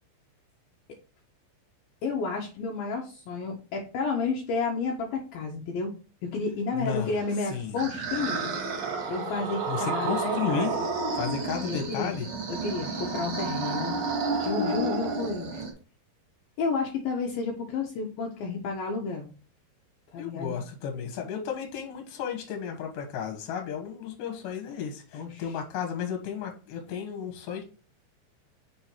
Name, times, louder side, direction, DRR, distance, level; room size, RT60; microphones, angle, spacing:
voice 1, 2.0-5.9 6.2-8.5 9.1-10.9 11.7-12.2 12.5-14.0 14.4-15.6 16.6-19.3 20.1-20.5 25.1-25.6, left 4 dB, 85° left, 0 dB, 2.1 m, -31 dB
voice 2, 6.7-7.2 7.4-7.8 9.7-10.8 11.1-12.3 20.2-27.6, left 7 dB, 70° left, 3 dB, 2.1 m, -33 dB
sound 1, 7.2-15.7, right 3 dB, 50° right, 2.3 m, -31 dB
6.7 x 3.7 x 4.5 m, 0.36 s
omnidirectional pair, 5.5 m